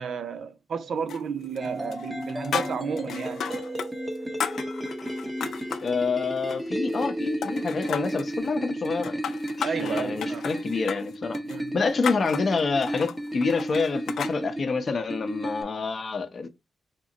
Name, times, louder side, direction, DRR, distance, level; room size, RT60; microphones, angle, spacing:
voice 1, 0.0-3.5 9.6-10.5 11.4-11.8, right 6 dB, 65° right, 0.4 m, -32 dB
sound 1, 1.1-1.7 1.9-3.9 4.1-5.9 6.4-7.1 7.4-8.3 8.8-14.4, left 7 dB, 80° left, 0.4 m, -34 dB
sound 2, 1.6-15.6, right 1 dB, 5° right, 0.8 m, -33 dB
voice 2, 5.8-9.2 9.6-11.4 11.7-16.5, left 4 dB, 45° left, 0.6 m, -27 dB
3.6 x 2.1 x 3.8 m
cardioid pair, 110°, 0 cm